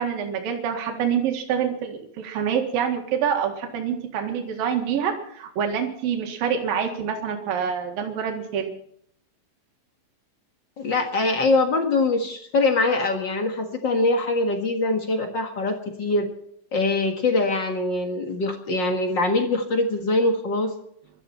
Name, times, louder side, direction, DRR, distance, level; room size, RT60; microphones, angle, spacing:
voice 1, 0.0-8.7, right 7 dB, 80° right, 3 dB, 3.6 m, -26 dB
voice 2, 10.8-16.3 16.7-20.7, left 2 dB, 45° left, 4 dB, 1.7 m, -23 dB
22.0 x 13.0 x 4.4 m, 0.69 s
omnidirectional pair, 4.1 m